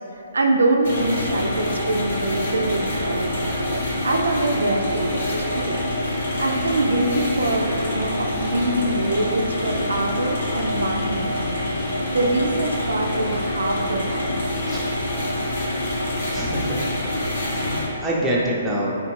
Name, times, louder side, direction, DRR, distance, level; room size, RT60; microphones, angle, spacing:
voice 1, 0.1-5.8 6.4-11.6 12.1-14.3, right 2 dB, 85° right, 1 dB, 0.3 m, -24 dB
sound 1, 0.8-17.9, left 1 dB, 70° left, 0.7 m, -26 dB
voice 2, 16.3-16.8 17.5-19.0, right 1 dB, 10° right, -5 dB, 0.5 m, -25 dB
3.4 x 2.4 x 3.1 m, 2.6 s
hypercardioid pair, 135°, 0 cm